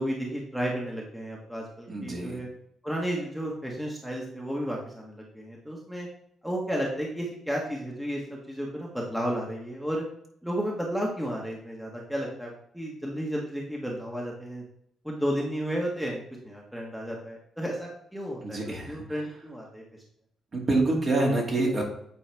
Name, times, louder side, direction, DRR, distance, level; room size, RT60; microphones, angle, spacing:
voice 1, 0.0-2.5 2.8-6.1 6.4-10.0 10.4-14.6 15.0-19.8, equal, ahead, -2 dB, 1.5 m, -33 dB
voice 2, 1.9-2.4 18.4-19.0 20.5-21.8, right 2 dB, 40° right, -2 dB, 2.3 m, -26 dB
8.7 x 4.1 x 3.5 m, 0.71 s
cardioid pair, 90°, 0 cm